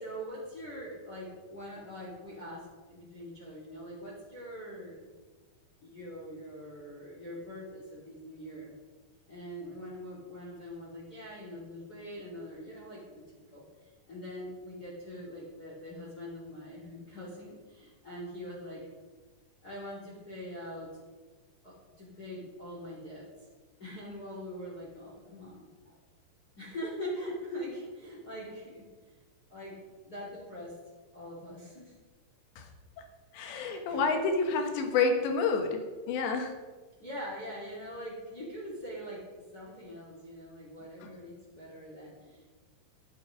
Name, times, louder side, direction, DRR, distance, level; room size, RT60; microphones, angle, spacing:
voice 1, 0.0-5.0 5.8-8.7 9.3-13.6 14.1-18.8 19.6-20.9 21.6-23.2 23.8-26.0 26.6-28.8 29.5-30.7 31.1-31.9 33.6-34.0 37.0-39.2 39.5-42.4, equal, 25° left, -6 dB, 2.8 m, -43 dB
voice 2, 33.3-35.8 36.1-36.5 41.0-41.1, left 4 dB, 90° left, 5 dB, 3.6 m, -28 dB
12.0 x 8.3 x 5.1 m, 1.3 s
omnidirectional pair, 4.9 m